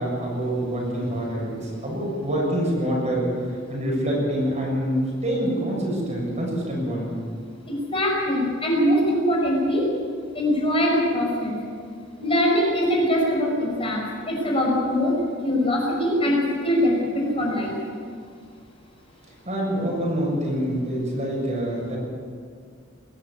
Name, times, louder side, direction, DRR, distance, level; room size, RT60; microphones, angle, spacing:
voice 1, 0.0-7.1 19.5-22.0, equal, 35° right, -3 dB, 7.2 m, -26 dB
voice 2, 7.7-9.9 10.3-11.6 12.2-15.2 15.4-16.4 16.6-17.7, equal, 30° left, -2 dB, 5.5 m, -22 dB
21.5 x 14.5 x 8.5 m, 2.1 s
head